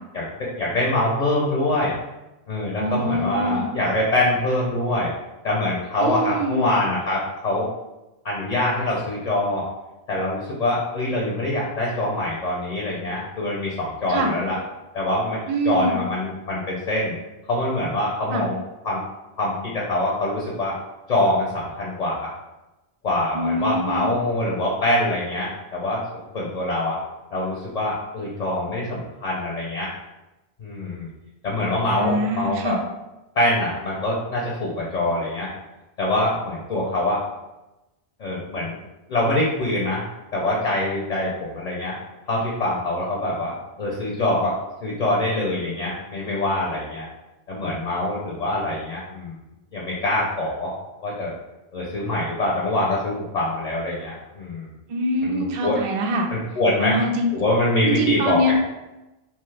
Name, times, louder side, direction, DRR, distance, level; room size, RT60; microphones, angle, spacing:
voice 1, 0.1-1.9 2.5-5.1 5.4-7.7 8.2-9.7 10.1-14.6 14.9-15.4 15.6-17.2 17.5-18.6 18.8-19.0 19.4-20.7 21.1-22.3 23.0-26.0 26.3-27.0 27.3-29.9 30.6-31.1 31.4-32.8 33.4-35.5 36.0-37.2 38.2-38.8 39.1-40.0 40.3-41.9 42.3-43.5 43.8-47.1 47.5-49.4 49.7-50.7 51.0-51.3 51.7-54.7 55.2-55.8 56.3-57.0 57.3-58.6, left 1 dB, 50° left, -4 dB, 0.6 m, -24 dB
voice 2, 2.8-3.7 6.0-6.6 14.1-14.3 15.5-16.0 18.3-18.5 23.3-24.1 32.0-32.8 54.9-56.3 56.8-57.3 57.8-58.6, equal, 55° right, 2 dB, 0.3 m, -24 dB
2.9 x 2.3 x 3.2 m, 1.0 s
omnidirectional pair, 1.1 m